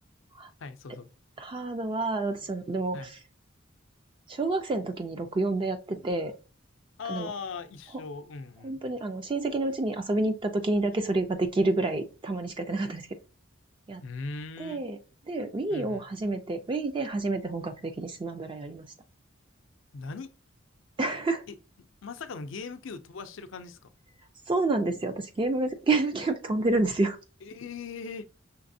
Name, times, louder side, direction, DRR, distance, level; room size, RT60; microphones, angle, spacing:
voice 1, 0.6-1.1 2.9-3.1 7.0-8.8 14.0-14.8 15.7-16.1 19.9-20.3 21.5-21.6 22.0-23.9 27.4-28.2, left 4 dB, 80° left, 0.5 m, -39 dB
voice 2, 1.4-3.2 4.3-6.3 7.1-7.3 8.6-13.1 13.9-14.0 14.6-15.0 15.3-18.8 21.0-21.4 24.5-27.2, right 2 dB, 25° right, 0.3 m, -29 dB
5.7 x 3.3 x 2.6 m
head